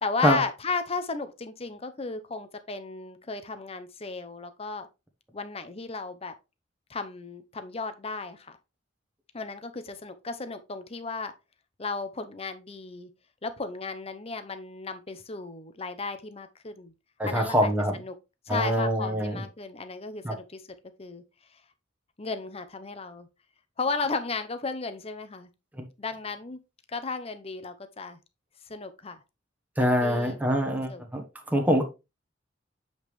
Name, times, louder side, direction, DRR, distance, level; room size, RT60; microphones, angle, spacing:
voice 1, 0.0-4.9 5.3-6.3 6.9-8.6 9.3-11.3 11.8-13.1 13.4-16.9 17.2-18.1 18.5-20.6 21.0-21.2 22.2-23.3 23.8-25.5 26.0-26.6 26.9-28.2 28.7-29.2 30.0-31.0, left 4 dB, 30° left, 0.8 m, -34 dB
voice 2, 17.2-17.9 18.5-19.4 20.2-20.4 29.8-31.2 31.5-31.8, equal, 10° right, 1.1 m, -24 dB
8.0 x 5.3 x 3.2 m
head